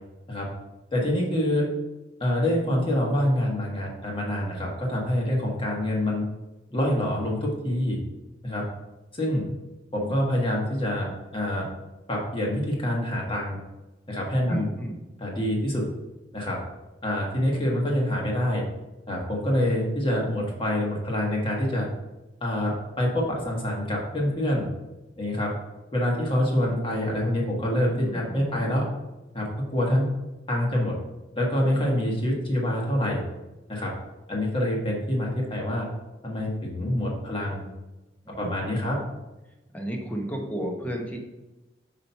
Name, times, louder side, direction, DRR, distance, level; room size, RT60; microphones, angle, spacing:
voice 1, 0.9-1.7 2.2-6.2 6.7-8.0 8.4-8.6 9.1-9.4 9.9-11.7 12.1-13.6 14.1-14.7 15.2-15.9 16.3-16.6 17.0-18.7 19.1-21.9 22.4-24.7 25.2-25.5 25.9-28.9 29.3-30.1 30.5-31.0 31.3-33.2 33.7-33.9 34.3-35.9 36.2-37.7 38.4-39.0, left 1 dB, 30° left, -2 dB, 1.3 m, -26 dB
voice 2, 14.5-15.0 28.0-28.6 38.2-39.1 39.7-41.2, right 1 dB, 10° left, 1 dB, 0.8 m, -33 dB
4.8 x 4.3 x 5.5 m, 1.0 s
head